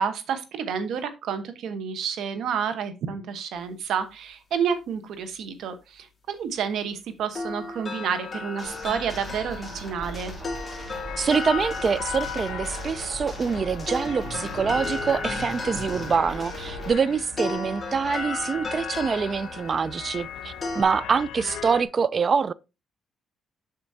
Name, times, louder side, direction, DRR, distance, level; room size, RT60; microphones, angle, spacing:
voice 1, 0.0-10.3, right 7 dB, 75° right, 1.1 m, -30 dB
sound 1, 7.4-20.8, left 2 dB, 25° left, 2.6 m, -35 dB
sound 2, 8.6-16.9, right 1 dB, 5° right, 3.3 m, -38 dB
sound 3, 11.1-21.8, left 10 dB, 90° left, 0.7 m, -38 dB
voice 2, 11.2-22.5, right 5 dB, 40° right, 0.4 m, -25 dB
7.7 x 6.0 x 2.8 m
cardioid pair, 90°, 0 cm